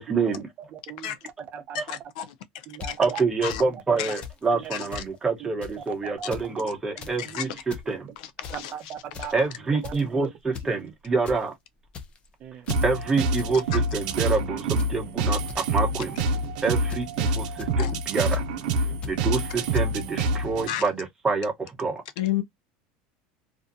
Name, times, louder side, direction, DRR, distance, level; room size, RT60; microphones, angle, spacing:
voice 1, 0.0-0.5 3.0-7.5 7.9-8.1 9.3-11.5 12.8-15.4 15.7-16.2 16.6-18.4 19.0-21.5 21.8-22.0, right 4 dB, 10° right, 0.9 m, -27 dB
voice 2, 0.6-2.0 2.7-3.2 3.6-4.0 4.5-4.7 5.4-6.5 7.0-7.6 7.9-8.0 8.5-9.3 9.6-10.3 10.6-10.7 12.4-12.7 16.7-16.9 18.8-19.0, right 8 dB, 35° right, 0.6 m, -40 dB
voice 3, 1.7-2.3 2.9-3.0 3.4-3.6 4.0-4.1 4.7-5.0 7.2-7.5 8.2-8.7 9.2-9.3 13.7-13.8 17.8-17.9 20.7-20.8 22.2-22.4, left 13 dB, 75° left, 0.5 m, -31 dB
sound 1, 2.8-2.9 3.5-3.6 4.2-4.4 4.6-4.7 4.9-5.1 5.6-5.8 6.2-6.5 6.8-7.2 7.6-7.9 8.4-8.7 9.1-9.4 9.8-10.1 10.5-10.7 11.0-11.4 11.9-12.3 12.6-12.9 13.4-13.5 13.8-14.2 14.8-14.9 15.5-15.6 16.2-16.5 16.9-17.2 17.6-17.7 18.3-18.4 19.0-19.2 19.7-19.8, left 6 dB, 25° left, 0.5 m, -37 dB
sound 2, 12.7-20.7, right 1 dB, 85° right, 0.6 m, -26 dB
2.6 x 2.2 x 2.5 m
supercardioid pair, 150°, 4 cm